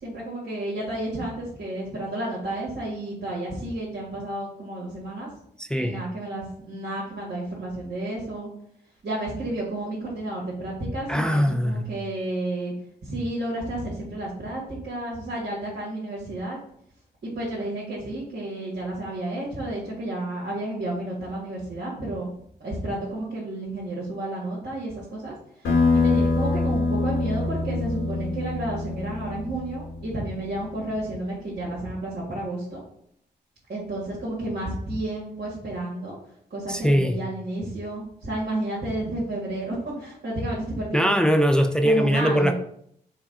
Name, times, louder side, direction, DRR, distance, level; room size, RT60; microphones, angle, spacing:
voice 1, 0.0-5.3 5.8-8.5 9.0-12.7 13.0-16.6 17.2-22.3 22.6-25.3 25.6-32.8 33.7-36.1 36.5-41.2 41.8-42.5, right 1 dB, 70° right, 1.7 m, -31 dB
voice 2, 5.6-6.0 11.1-11.9 36.7-37.2 40.9-42.5, equal, 5° left, 0.4 m, -21 dB
sound 1, 25.6-30.8, left 3 dB, 85° left, 1.7 m, -25 dB
4.7 x 2.3 x 4.8 m
cardioid pair, 60°, 18 cm